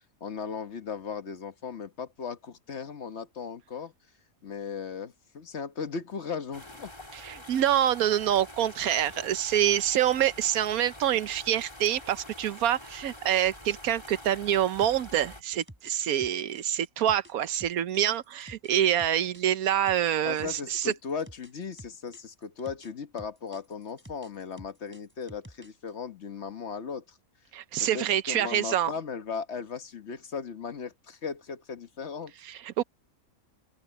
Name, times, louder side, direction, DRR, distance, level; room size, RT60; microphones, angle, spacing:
voice 1, 0.2-3.9 4.4-6.9 20.2-27.2 27.8-32.3, left 6 dB, 50° left, 1.4 m, -37 dB
sound 1, 6.5-15.4, left 1 dB, 20° left, 3.1 m, -46 dB
voice 2, 7.1-20.9 27.5-28.9 32.5-32.8, right 11 dB, 85° right, 1.2 m, -26 dB
sound 2, 14.8-19.4 19.9-22.9 23.2-25.9, equal, 10° right, 3.9 m, -50 dB
open air
omnidirectional pair, 1.5 m